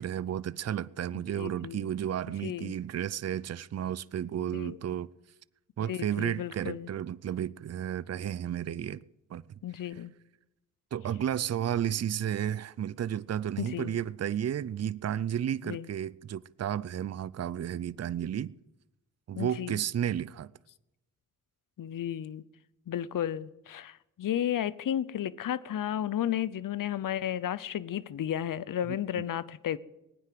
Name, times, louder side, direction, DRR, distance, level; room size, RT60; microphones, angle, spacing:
voice 1, 0.0-5.1 5.8-9.0 9.3-9.4 10.9-18.5 19.3-20.5 29.1-29.3, right 10 dB, 50° right, 0.6 m, -32 dB
voice 2, 1.1-1.9 2.4-2.7 4.5-4.8 5.8-6.9 9.6-10.1 13.6-13.9 15.6-15.9 19.3-19.8 21.8-22.4 22.9-29.8, left 10 dB, 70° left, 0.7 m, -33 dB
19.0 x 9.7 x 7.6 m
cardioid pair, 50°, 33 cm